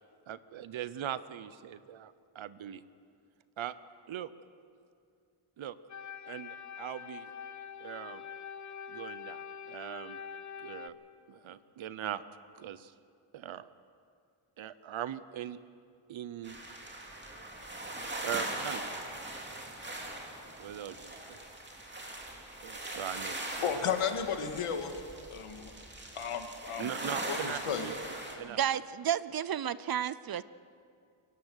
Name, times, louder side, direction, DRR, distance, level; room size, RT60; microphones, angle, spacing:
voice 1, 0.3-2.8 3.6-3.7 4.1-4.3 5.6-5.8 6.3-7.3 7.8-8.2 8.9-10.2 10.6-10.9 11.3-12.2 12.5-12.9 13.3-13.7 14.6-15.6 16.1-16.6 18.2-18.8 20.6-21.4 22.6-23.6 26.8-28.6, right 10 dB, 70° right, 0.8 m, -40 dB
sound 1, 5.9-10.9, left 7 dB, 35° left, 0.6 m, -44 dB
sound 2, 16.4-28.4, right 1 dB, 20° right, 2.5 m, -41 dB
voice 2, 23.6-24.9 25.3-25.7 26.2-26.9 27.3-27.9, left 7 dB, 85° left, 1.9 m, -33 dB
voice 3, 28.5-30.4, right 10 dB, 50° right, 0.5 m, -32 dB
23.0 x 18.0 x 6.5 m
wide cardioid pair, 160°, 50 cm